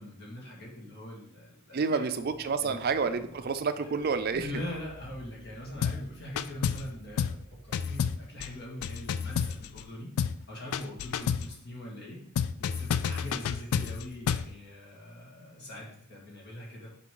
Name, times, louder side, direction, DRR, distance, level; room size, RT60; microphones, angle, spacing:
voice 1, 0.0-2.1 2.6-2.8 3.8-10.1 10.5-12.2 12.6-17.0, left 1 dB, 55° left, -3 dB, 2.0 m, -42 dB
voice 2, 1.7-4.6, right 5 dB, 45° right, 10 dB, 0.4 m, -29 dB
sound 1, 2.1-8.2, right 1 dB, 20° right, 1.0 m, -52 dB
sound 2, 5.8-6.1 6.4-6.9 7.2-7.4 7.7-9.9 10.2-10.4 10.7-11.5 12.4-14.5, left 7 dB, 85° left, 0.3 m, -30 dB
6.0 x 5.2 x 3.8 m, 0.70 s
head